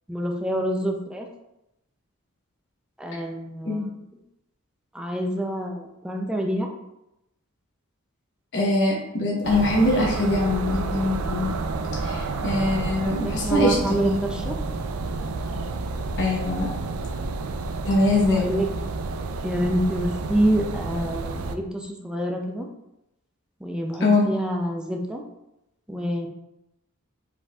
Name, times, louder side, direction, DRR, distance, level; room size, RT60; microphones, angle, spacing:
voice 1, 0.1-1.3 3.0-3.8 4.9-6.7 13.1-14.6 18.2-18.7 19.4-22.7 23.6-25.2 25.9-26.3, right 1 dB, 5° right, 1 dB, 0.4 m, -27 dB
voice 2, 8.5-11.5 12.0-14.3 16.2-16.7 17.8-18.4 24.0-24.3, left 2 dB, 55° left, -3 dB, 1.0 m, -23 dB
sound 1, 9.4-21.6, right 3 dB, 70° right, 0.4 m, -30 dB
4.7 x 4.1 x 2.4 m, 0.87 s
head